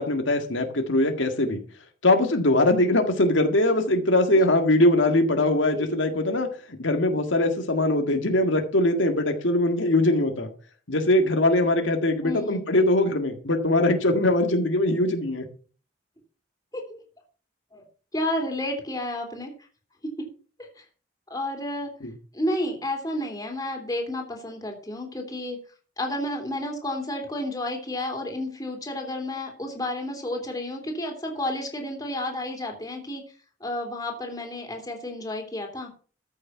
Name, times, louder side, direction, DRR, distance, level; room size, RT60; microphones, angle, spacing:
voice 1, 0.0-1.6 2.0-6.5 6.8-10.5 10.9-15.5 22.0-22.1, left 1 dB, 90° left, 5 dB, 1.9 m, -22 dB
voice 2, 12.2-12.6 16.7-17.0 17.7-17.8 18.1-19.5 20.2-20.3 20.6-20.8 21.3-21.9 22.3-25.6 26.0-33.2 33.6-35.9, left 1 dB, 20° left, 2 dB, 3.1 m, -31 dB
14.0 x 6.6 x 5.7 m, 0.39 s
head